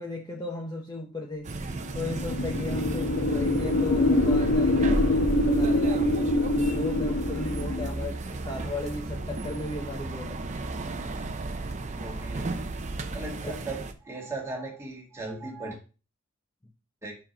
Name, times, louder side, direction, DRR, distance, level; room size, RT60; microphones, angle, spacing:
voice 1, 0.0-1.5 1.9-6.2 6.6-10.4, left 2 dB, 20° left, 1 dB, 0.7 m, -36 dB
sound 1, 1.4-13.9, right 2 dB, 35° right, 0.6 m, -35 dB
sound 2, 1.8-7.9, left 1 dB, 55° left, 0.9 m, -25 dB
voice 2, 11.9-12.6 13.1-15.8 17.0-17.2, right 2 dB, 10° right, -1 dB, 1.8 m, -38 dB
5.6 x 5.0 x 5.0 m, 0.34 s
head